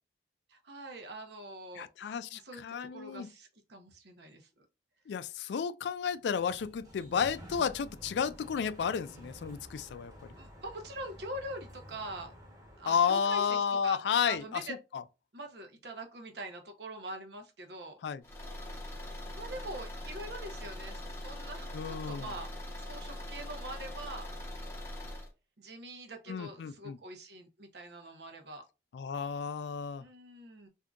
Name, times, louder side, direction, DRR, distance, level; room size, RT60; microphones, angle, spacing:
voice 1, 0.5-2.6 2.9-4.5 10.4-12.3 12.8-13.4 13.8-14.7 15.3-18.0 19.3-22.5 22.8-24.3 25.6-28.6 30.0-30.7, right 1 dB, 70° right, 0.8 m, -44 dB
voice 2, 1.8-3.3 5.1-10.1 12.9-14.6 14.9-15.0 18.0-18.2 21.7-22.3 26.3-27.0 28.9-30.0, left 7 dB, 75° left, 0.3 m, -32 dB
Sliding door, 6.1-13.5, equal, 20° right, 1.1 m, -51 dB
Car / Engine, 18.2-25.3, left 1 dB, 15° left, 0.8 m, -42 dB
3.6 x 2.7 x 2.4 m
head